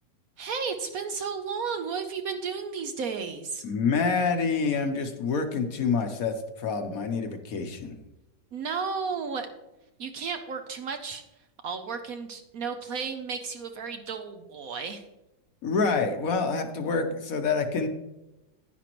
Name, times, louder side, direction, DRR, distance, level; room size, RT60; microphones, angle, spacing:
voice 1, 0.4-3.6 8.5-9.5 10.0-11.2 11.6-15.0, right 5 dB, 65° right, 7 dB, 1.0 m, -33 dB
voice 2, 3.6-8.0 15.6-17.9, left 4 dB, 60° left, 6 dB, 1.1 m, -27 dB
10.5 x 10.0 x 3.0 m, 0.99 s
omnidirectional pair, 1.9 m